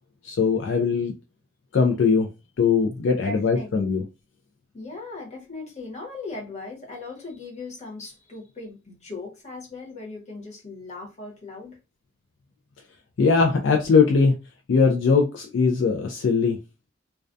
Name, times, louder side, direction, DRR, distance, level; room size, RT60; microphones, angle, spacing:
voice 1, 0.2-1.1 1.7-2.3 2.6-4.0 13.2-14.3 14.7-16.6, left 5 dB, 65° left, 0.4 m, -20 dB
voice 2, 3.2-4.0 4.7-11.8, left 3 dB, 35° left, 1.0 m, -38 dB
2.2 x 2.2 x 2.5 m
head